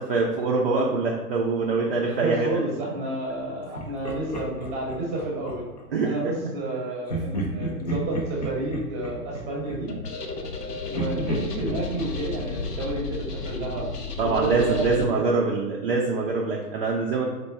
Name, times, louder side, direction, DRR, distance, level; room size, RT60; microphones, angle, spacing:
voice 1, 0.0-2.5 5.9-6.2 14.2-17.3, right 3 dB, 40° right, -2 dB, 0.4 m, -24 dB
voice 2, 2.0-5.6 6.0-9.9 10.9-13.9 14.2-15.4, right 2 dB, 15° right, -3 dB, 0.8 m, -30 dB
Laughter, 3.7-5.9 7.1-10.6 10.9-13.7, right 1 dB, 30° left, 0.3 m, -33 dB
sound 1, 9.9-15.1, left 4 dB, 80° left, 0.8 m, -34 dB
4.3 x 2.2 x 3.3 m, 1.2 s
figure-of-eight pair, 120°, 47 cm